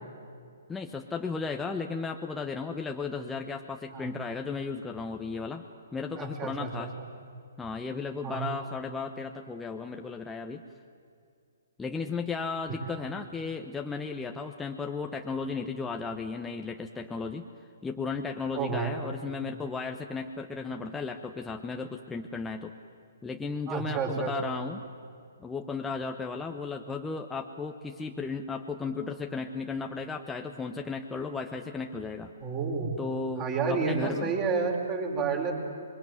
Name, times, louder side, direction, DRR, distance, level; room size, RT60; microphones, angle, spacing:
voice 1, 0.7-5.6 5.9-6.9 7.6-10.6 11.8-17.5 17.8-22.7 23.2-24.8 25.4-32.3 33.0-34.3, left 4 dB, 10° left, 3 dB, 1.0 m, -35 dB
voice 2, 6.1-6.7 8.2-8.4 18.5-19.0 23.7-24.3 32.4-32.9 33.4-35.5, right 5 dB, 25° right, 0 dB, 5.1 m, -30 dB
26.5 x 22.5 x 9.4 m, 2.4 s
figure-of-eight pair, 130°, 0 cm